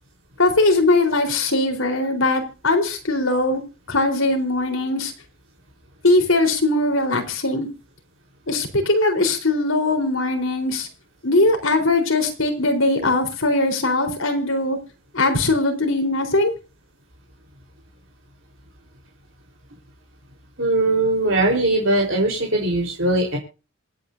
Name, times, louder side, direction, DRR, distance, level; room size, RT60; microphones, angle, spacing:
voice 1, 0.4-3.6 3.9-5.1 6.0-7.7 8.5-10.9 11.2-14.8 15.1-16.5, left 2 dB, 65° left, 5 dB, 4.2 m, -20 dB
voice 2, 20.6-23.4, right 2 dB, 60° right, 0 dB, 4.2 m, -20 dB
27.0 x 9.1 x 2.7 m, 0.33 s
head